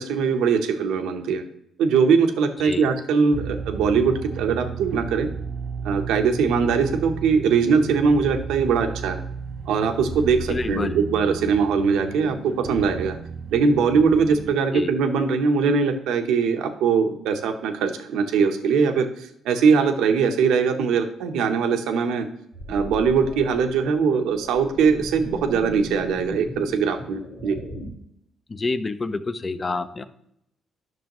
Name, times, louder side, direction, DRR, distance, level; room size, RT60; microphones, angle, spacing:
voice 1, 0.0-1.4 1.8-5.3 5.8-9.2 9.7-13.2 13.5-22.3 22.7-27.6, right 5 dB, 90° right, 6 dB, 0.8 m, -21 dB
sound 1, 3.3-14.5, right 6 dB, 50° right, 0.5 m, -34 dB
voice 2, 10.5-11.0 14.7-14.9 28.5-30.0, left 3 dB, 30° left, 12 dB, 0.5 m, -27 dB
sound 2, 22.5-27.9, left 1 dB, 75° left, 1.9 m, -38 dB
10.5 x 6.2 x 3.0 m, 0.76 s
cardioid pair, 90°, 0 cm